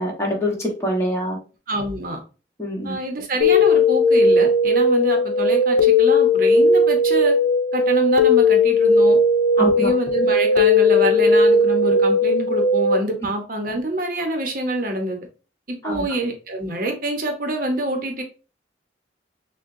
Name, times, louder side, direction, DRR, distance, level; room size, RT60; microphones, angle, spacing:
voice 1, 0.0-1.4 2.6-2.9 9.6-9.9 15.8-16.0, equal, 15° left, 1.2 m, -24 dB
voice 2, 1.7-2.2 2.8-7.3 7.7-9.2 9.6-15.2 15.7-18.2, right 1 dB, 50° right, 0.8 m, -26 dB
sound 1, 3.4-13.0, left 2 dB, 65° left, 0.7 m, -17 dB
6.3 x 2.2 x 2.6 m
head